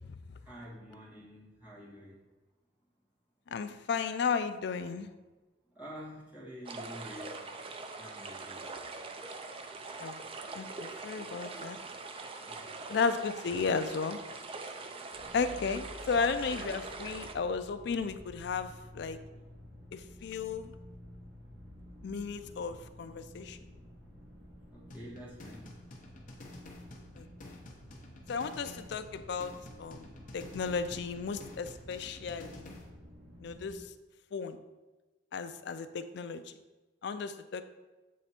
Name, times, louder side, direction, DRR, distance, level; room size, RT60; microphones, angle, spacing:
voice 1, 0.4-2.2 5.7-7.4 7.9-8.7 12.4-12.7 15.2-15.3 24.7-25.7, equal, 10° right, -8 dB, 1.7 m, -48 dB
voice 2, 3.5-5.1 10.0-10.2 10.5-11.8 12.9-14.2 15.3-19.2 19.9-20.7 22.0-23.6 27.2-27.3 28.3-30.1 30.3-32.8 33.4-33.9 34.3-34.6 35.3-36.5 37.0-37.6, left 5 dB, 60° left, 10 dB, 0.4 m, -34 dB
sound 1, 6.6-17.3, right 3 dB, 30° right, 0.4 m, -43 dB
sound 2, 15.2-33.8, left 1 dB, 75° right, 1.6 m, -52 dB
sound 3, 24.9-32.9, left 1 dB, 45° left, 0.9 m, -50 dB
7.5 x 3.3 x 4.2 m, 1.2 s
head